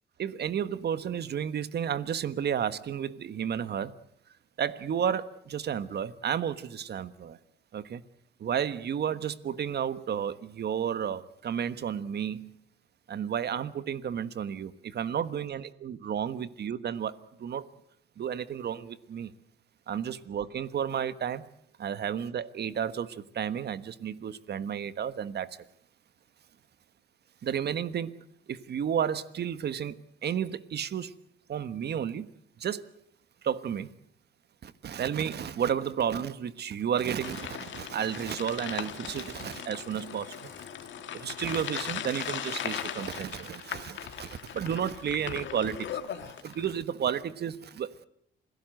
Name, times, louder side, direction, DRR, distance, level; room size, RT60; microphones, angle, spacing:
voice 1, 0.2-3.9 4.6-7.4 7.7-8.0 8.4-12.5 13.1-17.7 18.2-19.3 19.9-21.4 21.8-25.6 27.4-28.1 28.5-31.1 31.5-32.3 32.6-32.9 33.4-33.9 34.6-40.7 41.1-47.9, right 8 dB, 55° right, 1.4 m, -32 dB
sound 1, 37.2-46.8, left 9 dB, 70° left, 2.0 m, -38 dB
27.5 x 17.5 x 7.8 m
cardioid pair, 90°, 20 cm